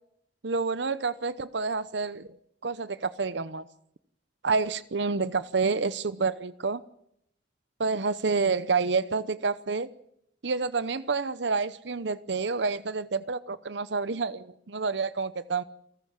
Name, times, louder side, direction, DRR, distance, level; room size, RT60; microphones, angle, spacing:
voice 1, 0.4-2.3 2.6-3.6 4.4-6.8 7.8-9.9 10.4-15.6, right 4 dB, 65° right, 15 dB, 0.8 m, -28 dB
28.5 x 14.0 x 7.5 m, 0.73 s
head